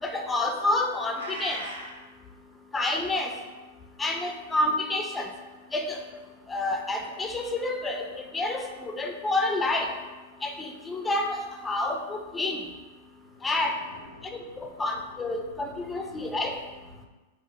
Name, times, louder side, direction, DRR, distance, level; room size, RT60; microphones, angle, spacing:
voice 1, 0.0-1.6 2.7-3.3 4.0-5.3 5.7-6.0 6.5-8.1 8.3-9.9 10.4-12.6 13.4-13.8 14.3-16.6, left 2 dB, 10° left, 3 dB, 0.4 m, -29 dB
Meow, 1.1-2.0, right 1 dB, 65° right, 0.6 m, -38 dB
voice 2, 13.3-14.7 15.6-15.8 16.2-16.3 16.7-17.1, left 1 dB, 70° left, 2 dB, 0.6 m, -52 dB
3.5 x 2.5 x 3.5 m, 1.2 s
figure-of-eight pair, 95°, 0 cm